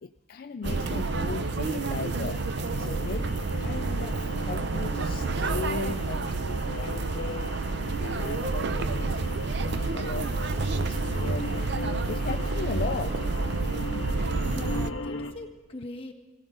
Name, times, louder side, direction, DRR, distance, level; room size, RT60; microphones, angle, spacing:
voice 1, 0.0-2.4 2.8-3.3 3.6-7.6 8.0-10.4 10.7-11.7 12.1-13.2, left 4 dB, 50° left, 8 dB, 0.4 m, -37 dB
sound 1, 0.6-15.3, left 2 dB, 85° left, 1.0 m, -38 dB
sound 2, 0.6-14.9, right 3 dB, 60° right, 0.6 m, -29 dB
voice 2, 14.4-16.1, left 2 dB, 30° left, 0 dB, 1.5 m, -40 dB
21.5 x 16.5 x 3.9 m, 1.2 s
head